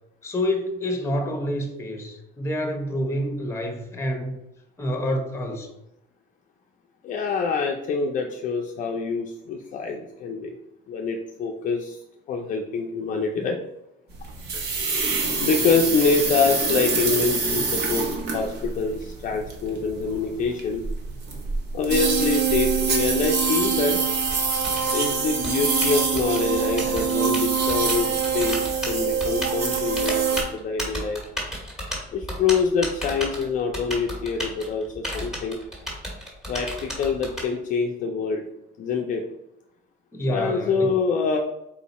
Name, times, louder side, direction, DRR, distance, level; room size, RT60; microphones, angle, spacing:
voice 1, 0.2-4.3 4.8-5.7 40.1-40.9, left 1 dB, 15° left, 3 dB, 0.9 m, -27 dB
voice 2, 7.0-10.6 10.9-12.0 12.3-13.6 15.4-20.8 21.7-24.0 24.9-31.2 32.1-35.6 36.5-38.4 38.8-39.2 40.3-41.4, left 5 dB, 45° left, 1 dB, 0.5 m, -25 dB
sound 1, 14.1-30.4, right 5 dB, 60° right, 1.0 m, -25 dB
Typing, 22.8-37.4, equal, ahead, 1.7 m, -33 dB
4.3 x 2.8 x 4.1 m, 0.85 s
cardioid pair, 140°, 19 cm